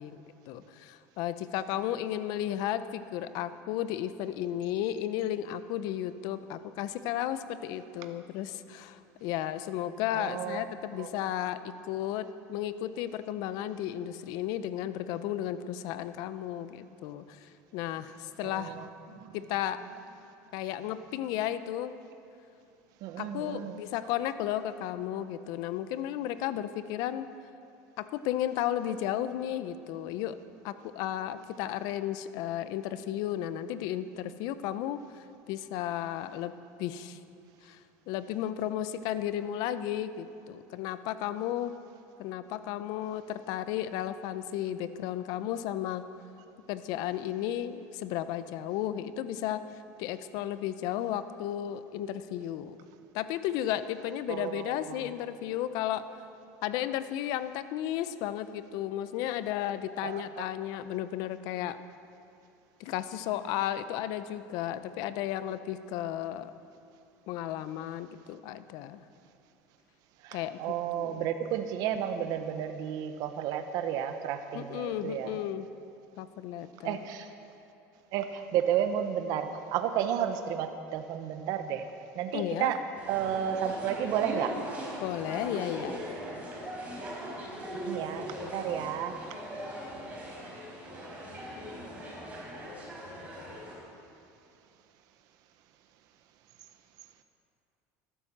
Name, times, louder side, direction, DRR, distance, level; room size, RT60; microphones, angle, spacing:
voice 1, 0.0-11.6 11.9-18.7 19.3-19.8 20.5-21.9 23.2-27.3 28.0-30.4 30.6-36.5 36.8-37.2 37.6-37.8 38.1-41.7 42.2-46.0 46.7-49.6 50.0-52.8 53.1-56.1 56.6-61.8 62.8-66.5 67.3-69.0 70.3-70.6 70.9-71.2 74.5-75.7 76.2-77.0 82.3-82.7 85.0-86.0, left 11 dB, 65° left, 12 dB, 0.7 m, -34 dB
voice 2, 10.1-10.6 11.0-11.1 18.4-18.9 19.2-19.4 23.0-23.8 54.3-55.1 60.0-60.4 70.2-75.3 76.8-77.3 78.1-81.8 82.1-84.6 87.8-89.2, right 9 dB, 60° right, 7 dB, 0.9 m, -32 dB
sound 1, 82.9-93.7, equal, 20° right, 4.6 m, -40 dB
12.5 x 12.0 x 7.3 m, 2.7 s
supercardioid pair, 130°, 7 cm